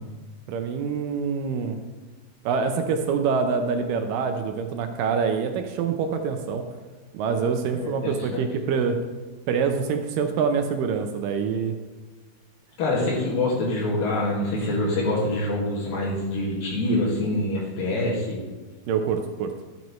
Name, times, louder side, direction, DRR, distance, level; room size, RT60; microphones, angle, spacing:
voice 1, 0.5-1.8 2.5-6.6 7.1-9.0 9.5-11.7 18.9-19.5, right 6 dB, 75° right, 6 dB, 2.2 m, -25 dB
voice 2, 7.7-8.5 12.8-18.4, left 2 dB, 70° left, -4 dB, 3.5 m, -25 dB
11.5 x 9.2 x 3.1 m, 1.3 s
omnidirectional pair, 4.2 m